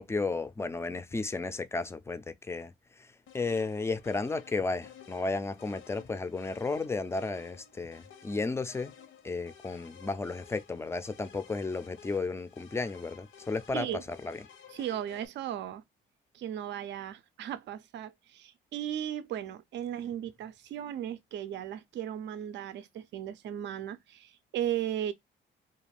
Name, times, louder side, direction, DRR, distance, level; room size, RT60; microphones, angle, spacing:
voice 1, 0.0-8.9 9.2-13.9 14.2-14.4, left 3 dB, 15° left, 0.3 m, -33 dB
sound 1, 3.3-15.3, left 8 dB, 80° left, 0.6 m, -54 dB
voice 2, 14.7-15.8 16.3-25.1, right 10 dB, 65° right, 0.4 m, -36 dB
2.5 x 2.3 x 3.2 m
cardioid pair, 90°, 20 cm